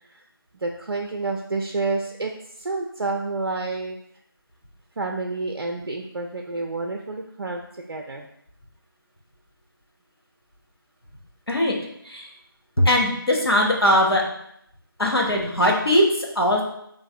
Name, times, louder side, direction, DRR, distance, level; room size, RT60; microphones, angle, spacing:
voice 1, 0.5-2.3 2.6-4.0 5.0-8.3, right 3 dB, 70° right, 1 dB, 0.4 m, -29 dB
voice 2, 12.8-14.2 15.0-16.6, left 1 dB, 85° left, -1 dB, 0.8 m, -20 dB
3.2 x 2.5 x 2.3 m, 0.74 s
figure-of-eight pair, 165°, 12 cm